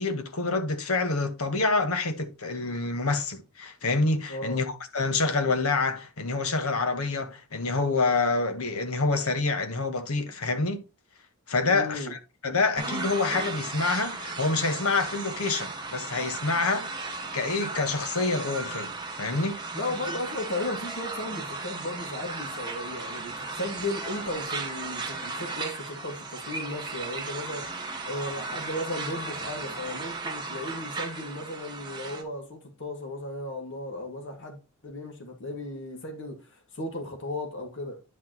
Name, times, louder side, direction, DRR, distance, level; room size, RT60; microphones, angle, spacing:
voice 1, 0.0-10.8 11.5-16.9 17.3-19.6, left 3 dB, 80° left, 1.3 m, -27 dB
voice 2, 4.3-4.6 11.7-12.1 19.7-34.6 34.8-38.0, left 1 dB, 55° left, 2.1 m, -35 dB
sound 1, 12.8-32.2, right 3 dB, 20° right, 1.4 m, -36 dB
9.8 x 6.0 x 2.9 m
head